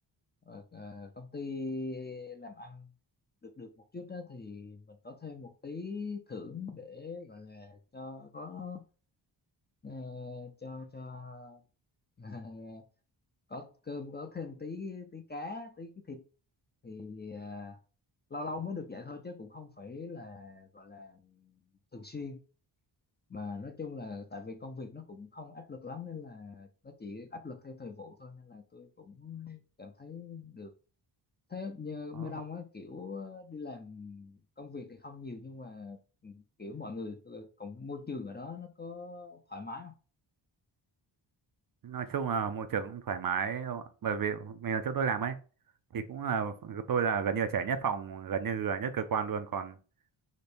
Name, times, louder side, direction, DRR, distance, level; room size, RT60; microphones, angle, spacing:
voice 1, 0.5-2.9 3.4-8.9 9.8-11.6 12.2-12.8 13.5-16.2 16.8-17.8 18.3-21.6 21.9-22.4 23.3-30.7 31.5-40.0, left 4 dB, 20° left, 0.4 m, -42 dB
voice 2, 41.8-45.4 45.9-49.8, right 6 dB, 50° right, 0.5 m, -32 dB
5.1 x 2.1 x 4.2 m
wide cardioid pair, 125°, 47 cm